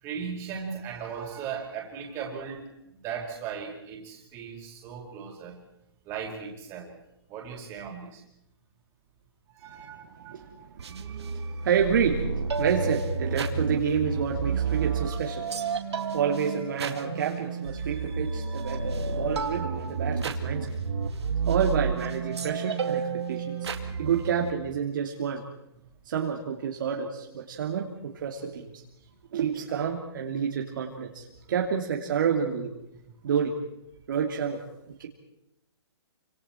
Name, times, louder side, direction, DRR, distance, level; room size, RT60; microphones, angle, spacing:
voice 1, 0.0-2.7 3.0-5.6 6.0-6.9 7.3-8.2 9.5-11.7 16.3-16.4, right 6 dB, 20° right, 0 dB, 4.6 m, -38 dB
voice 2, 10.2-15.5 16.1-20.7 21.5-23.7 24.0-25.4 26.1-28.8 29.3-32.7 33.2-33.5 34.1-34.6 34.9-35.1, right 7 dB, 50° right, 1 dB, 2.6 m, -29 dB
sound 1, 10.8-24.5, right 5 dB, 70° right, 2.4 m, -30 dB
28.0 x 26.0 x 4.4 m, 0.81 s
hypercardioid pair, 165°, 14 cm